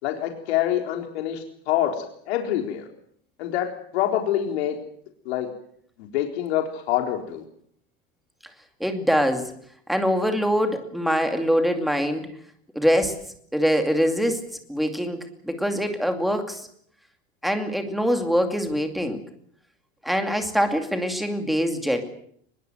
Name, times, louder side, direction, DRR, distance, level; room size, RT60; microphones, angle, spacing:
voice 1, 0.0-2.9 3.4-4.8 5.3-5.5 6.0-7.4, left 11 dB, 85° left, 3 dB, 4.1 m, -26 dB
voice 2, 8.8-9.5 9.9-12.3 12.7-13.2 13.5-14.4 14.7-16.7 17.4-19.2 20.0-22.0, equal, ahead, 5 dB, 2.4 m, -23 dB
23.5 x 21.5 x 7.9 m, 0.65 s
supercardioid pair, 175°, 32 cm